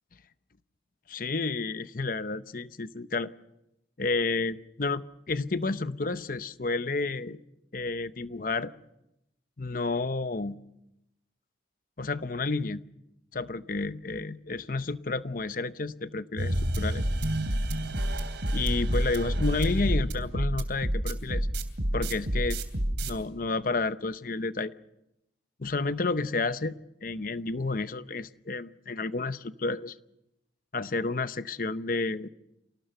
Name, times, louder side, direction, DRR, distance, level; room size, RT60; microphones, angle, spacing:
voice 1, 1.1-3.3 4.0-7.4 7.7-8.7 9.6-10.6 12.0-12.8 13.3-17.0 18.5-21.5 21.9-22.6 23.0-24.7 25.6-29.9 30.7-32.3, left 3 dB, 50° left, 13 dB, 0.8 m, -31 dB
sound 1, 16.4-23.1, right 1 dB, 70° right, 2.9 m, -28 dB
27.5 x 18.5 x 6.8 m, 0.86 s
head